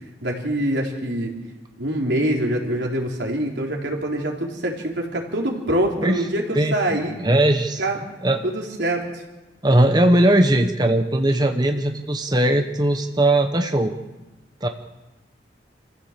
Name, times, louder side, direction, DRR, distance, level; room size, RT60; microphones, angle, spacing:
voice 1, 0.2-1.3 1.8-7.2 7.8-8.0 8.4-9.2, right 1 dB, 85° right, 0 dB, 3.7 m, -24 dB
voice 2, 6.5-7.8 8.2-8.4 9.6-13.9 14.6-14.7, right 1 dB, 25° right, 5 dB, 1.0 m, -19 dB
27.0 x 15.0 x 7.4 m, 1.1 s
head